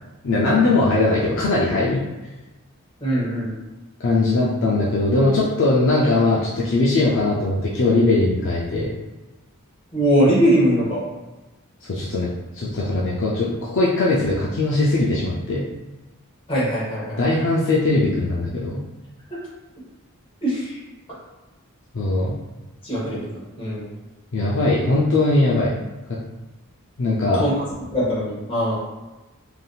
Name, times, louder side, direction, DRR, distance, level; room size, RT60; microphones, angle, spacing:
voice 1, 0.2-2.0 4.0-8.9 11.8-15.7 17.2-18.8 21.9-22.3 24.3-25.8 26.1-26.2 27.0-27.4, left 2 dB, 55° left, -5 dB, 0.4 m, -20 dB
voice 2, 3.0-3.5 9.9-11.0 16.5-17.2 19.3-19.4 20.4-20.8 22.8-23.9 27.4-27.6 27.9-28.8, equal, 25° left, -7 dB, 1.1 m, -21 dB
3.4 x 2.7 x 2.3 m, 1.1 s
head